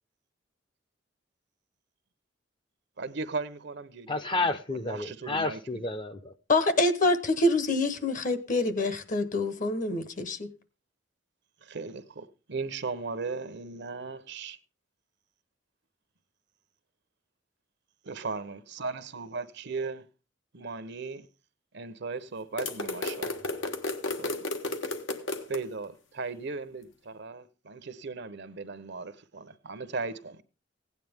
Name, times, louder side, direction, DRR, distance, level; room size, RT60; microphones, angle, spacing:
voice 1, 3.0-4.1 4.9-5.6 11.7-14.6 18.1-20.0 20.5-21.2 21.7-23.3 24.2-24.3 25.5-30.4, right 4 dB, 65° right, 0.9 m, -37 dB
voice 2, 4.1-6.3, left 3 dB, 25° left, 0.6 m, -31 dB
voice 3, 6.5-10.5, left 2 dB, 45° left, 1.1 m, -26 dB
sound 1, 22.6-25.6, left 2 dB, 80° left, 1.4 m, -33 dB
16.0 x 9.4 x 3.5 m
head